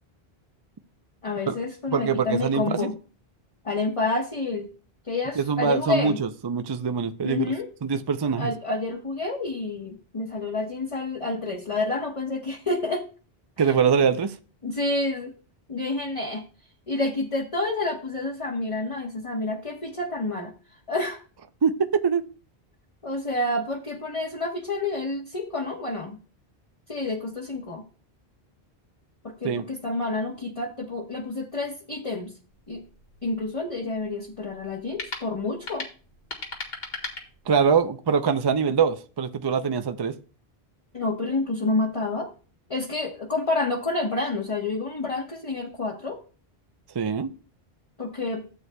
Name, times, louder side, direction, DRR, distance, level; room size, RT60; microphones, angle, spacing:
voice 1, 1.2-2.9 3.6-4.7 5.0-6.2 7.2-7.7 8.4-13.1 13.6-13.7 14.6-15.3 15.7-16.4 16.9-20.5 20.9-21.2 23.0-26.2 26.9-27.8 29.2-32.3 32.7-32.8 33.2-35.9 40.9-42.3 42.7-46.2 48.0-48.5, left 2 dB, 30° left, 1.1 m, -29 dB
voice 2, 1.9-2.9 5.4-7.5 7.8-8.5 13.6-14.4 21.6-22.3 29.4-29.6 37.5-40.2 46.9-47.3, right 6 dB, 45° right, 0.3 m, -23 dB
sound 1, 32.5-37.9, left 3 dB, 65° left, 1.9 m, -39 dB
13.5 x 8.0 x 2.2 m
omnidirectional pair, 1.1 m